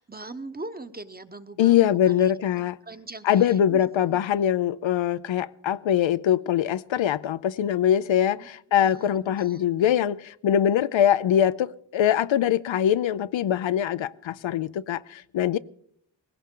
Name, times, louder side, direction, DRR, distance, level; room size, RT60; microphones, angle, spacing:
voice 1, 0.0-3.8 4.1-4.2 8.3-8.5 8.8-9.7, right 2 dB, 20° right, 10 dB, 0.9 m, -41 dB
voice 2, 1.6-2.8 3.2-15.6, left 10 dB, 75° left, 16 dB, 0.5 m, -23 dB
19.0 x 17.0 x 3.7 m, 0.69 s
wide cardioid pair, 70°, 46 cm